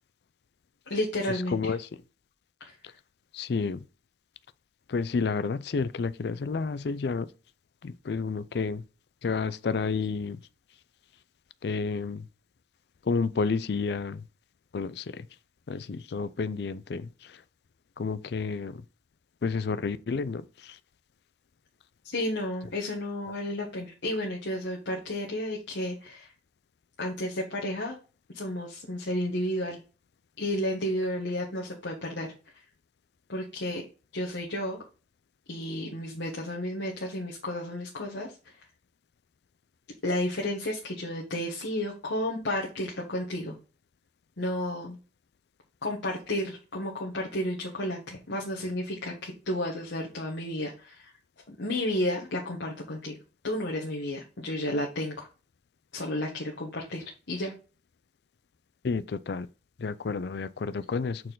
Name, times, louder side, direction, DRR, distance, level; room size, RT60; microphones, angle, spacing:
voice 1, 0.9-1.8 2.6-2.7 22.0-26.3 27.0-27.9 28.3-29.8 30.4-32.3 33.3-33.8 34.1-34.8 35.5-38.3 40.0-43.5 44.4-45.0 45.8-51.1 51.5-53.1 53.4-55.3 55.9-57.5, left 1 dB, 85° left, 1.4 m, -32 dB
voice 2, 3.3-3.8 4.9-7.3 7.8-8.8 9.2-10.4 11.6-12.2 13.1-14.2 14.7-15.0 15.7-17.1 18.0-18.8 19.4-20.4 58.8-59.5 59.8-61.2, left 4 dB, 60° left, 0.4 m, -30 dB
6.3 x 4.4 x 3.8 m
head